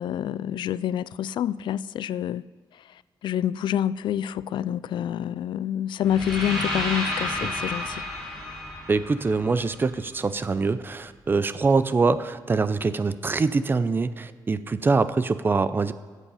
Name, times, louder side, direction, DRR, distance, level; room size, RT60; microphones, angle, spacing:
voice 1, 0.0-2.4 3.2-8.0, left 10 dB, 80° left, 0.3 m, -27 dB
sound 1, 6.0-10.1, left 1 dB, 5° left, 3.8 m, -31 dB
voice 2, 8.9-15.9, right 4 dB, 25° right, 0.5 m, -24 dB
15.0 x 8.2 x 5.6 m
wide cardioid pair, 135°, 8 cm